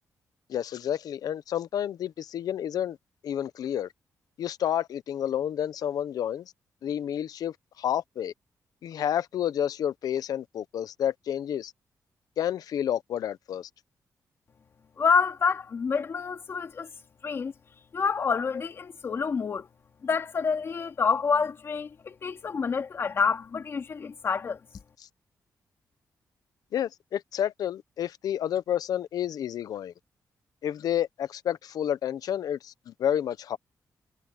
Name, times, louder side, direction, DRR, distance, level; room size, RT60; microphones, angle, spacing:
voice 1, 0.5-3.0 3.2-3.9 4.4-6.4 6.8-8.3 8.8-11.7 12.4-13.7 26.7-29.9 30.6-33.6, left 10 dB, 75° left, 0.8 m, -30 dB
voice 2, 15.0-16.9 17.2-17.5 17.9-19.7 20.0-24.6, left 5 dB, 40° left, 2.8 m, -27 dB
wide cardioid pair, 170°, 7 cm